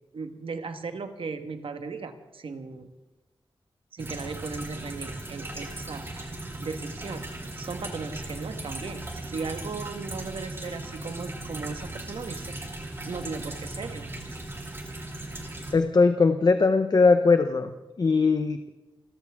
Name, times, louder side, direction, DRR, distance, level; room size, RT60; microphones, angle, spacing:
voice 1, 0.1-2.9 3.9-7.3 7.6-12.6 13.0-14.1, right 4 dB, 75° right, 8 dB, 1.5 m, -37 dB
sound 1, 4.0-15.7, right 2 dB, 25° right, 2.7 m, -38 dB
voice 2, 15.7-17.7 18.0-18.6, left 4 dB, 45° left, 8 dB, 0.8 m, -20 dB
28.5 x 13.5 x 3.6 m, 1.1 s
wide cardioid pair, 140°, 9 cm